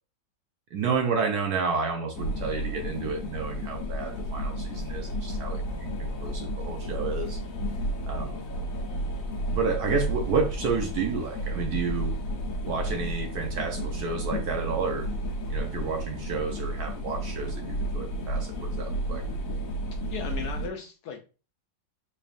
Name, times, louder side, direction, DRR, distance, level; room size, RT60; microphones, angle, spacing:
voice 1, 0.7-7.4 8.1-8.4 9.5-12.2 12.6-15.1 15.5-19.2, right 5 dB, 70° right, 1.0 m, -31 dB
sound 1, 2.1-20.7, equal, 55° left, 1.2 m, -32 dB
voice 2, 20.1-21.2, left 6 dB, 70° left, 1.0 m, -36 dB
4.4 x 3.3 x 2.4 m
omnidirectional pair, 2.1 m